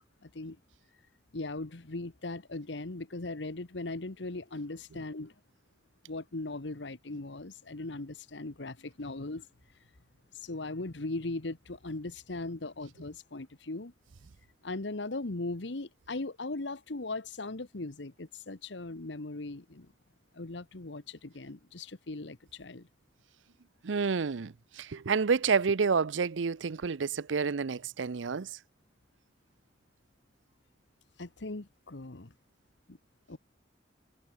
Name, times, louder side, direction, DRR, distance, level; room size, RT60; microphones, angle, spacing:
voice 1, 0.2-0.6 1.3-5.3 6.1-9.5 10.4-13.9 14.6-19.9 20.3-22.9 31.2-32.3 32.9-33.0 33.3-33.4, left 2 dB, 70° left, 1.3 m, -39 dB
voice 2, 23.8-28.6, right 5 dB, 90° right, 0.6 m, -29 dB
head